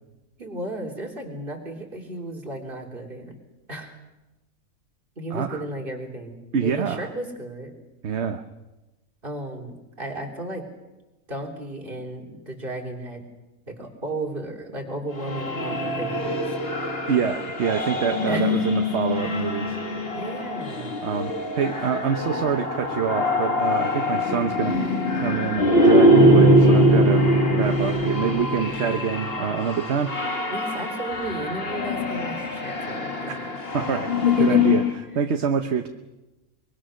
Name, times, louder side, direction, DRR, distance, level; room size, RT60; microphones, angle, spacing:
voice 1, 0.4-3.4 3.7-4.0 5.2-7.7 9.2-10.7 11.3-13.2 13.7-16.5 18.3-18.6 20.1-20.9 30.5-33.6 34.2-34.6, right 2 dB, 40° right, 0 dB, 3.6 m, -34 dB
voice 2, 5.3-5.6 6.5-7.1 8.0-8.4 17.1-19.8 21.0-24.7 25.2-27.2 27.5-30.1 33.7-34.1 34.4-34.8 35.1-35.9, right 7 dB, 55° right, 7 dB, 1.2 m, -26 dB
sound 1, 15.2-35.0, left 1 dB, 40° left, 2.3 m, -22 dB
23.5 x 22.5 x 6.4 m, 1.1 s
omnidirectional pair, 1.5 m